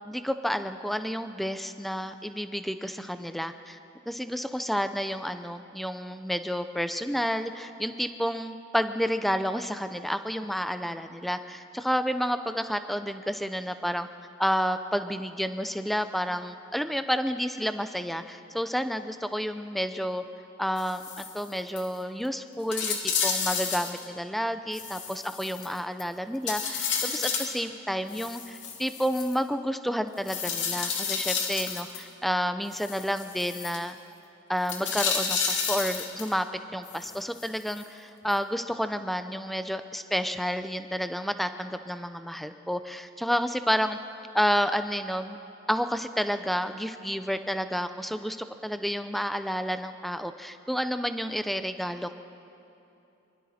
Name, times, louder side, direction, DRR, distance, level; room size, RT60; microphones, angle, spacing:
voice 1, 0.1-3.8 4.1-14.1 14.4-20.2 20.6-34.0 34.5-36.5 36.7-44.0 44.3-45.4 45.7-52.2, equal, ahead, 9 dB, 0.6 m, -30 dB
sound 1, 20.8-21.5 21.8-21.9 22.3-22.4 22.7-24.0 24.7-26.0 26.5-27.6 28.1-29.4 30.3-32.0 32.7-33.8 34.7-36.3 36.9-37.8 38.3-38.4, left 6 dB, 60° left, 2.5 m, -31 dB
24.5 x 24.5 x 4.3 m, 2.9 s
head